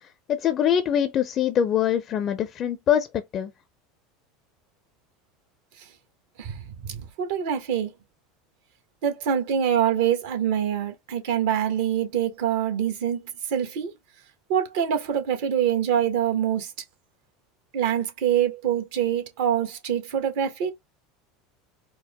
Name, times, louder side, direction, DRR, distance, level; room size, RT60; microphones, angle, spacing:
voice 1, 0.3-3.1 3.3-3.5, left 9 dB, 45° left, 0.6 m, -23 dB
voice 2, 6.8-7.9 9.0-13.2 13.5-13.9 14.5-16.7 17.7-20.7, right 9 dB, 70° right, 1.3 m, -25 dB
4.6 x 2.1 x 3.5 m
hypercardioid pair, 90°, 0 cm